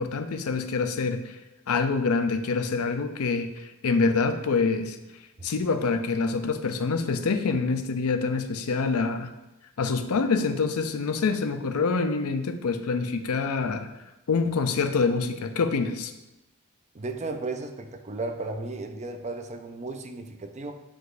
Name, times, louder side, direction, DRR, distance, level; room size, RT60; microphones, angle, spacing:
voice 1, 0.0-1.4 1.7-5.0 5.4-9.3 9.8-13.9 14.3-16.1, left 4 dB, 75° left, 8 dB, 0.5 m, -26 dB
voice 2, 16.9-20.7, right 3 dB, 30° right, 6 dB, 0.5 m, -34 dB
7.9 x 5.0 x 2.6 m, 0.96 s
head